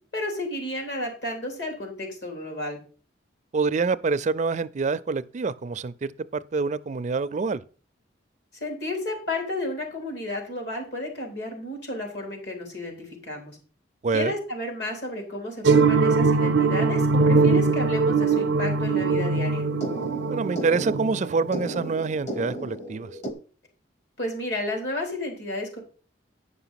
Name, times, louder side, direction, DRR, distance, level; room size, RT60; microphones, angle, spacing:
voice 1, 0.1-2.8 8.6-13.6 14.1-19.6 24.2-25.8, left 1 dB, 65° left, 3.8 m, -32 dB
voice 2, 3.5-7.6 14.0-14.3 20.3-23.1, right 4 dB, 40° right, 0.4 m, -26 dB
sound 1, 15.6-21.9, right 4 dB, 90° right, 0.6 m, -21 dB
sound 2, 18.8-23.3, right 1 dB, 40° left, 1.3 m, -37 dB
9.7 x 5.9 x 5.7 m
head